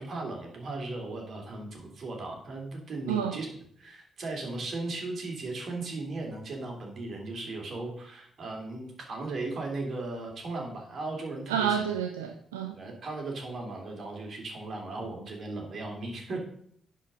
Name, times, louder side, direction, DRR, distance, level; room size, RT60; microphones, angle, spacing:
voice 1, 0.0-3.5 3.8-11.9 12.7-16.4, right 2 dB, 55° right, 2.9 m, -37 dB
voice 2, 3.1-3.4 11.5-12.8, right 8 dB, 85° right, 0.5 m, -29 dB
10.0 x 4.7 x 6.2 m
hypercardioid pair, 40°, 0 cm